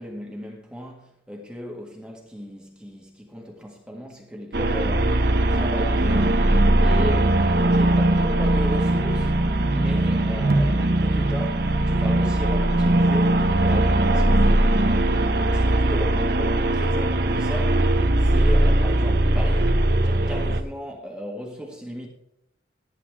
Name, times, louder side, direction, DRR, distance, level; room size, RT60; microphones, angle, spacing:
voice 1, 0.0-5.2 5.5-6.4 6.8-9.4 9.7-14.7 15.5-22.1, equal, 5° right, 1.8 m, -36 dB
sound 1, 4.5-20.6, right 1 dB, 60° right, 1.0 m, -20 dB
18.0 x 10.0 x 3.6 m
head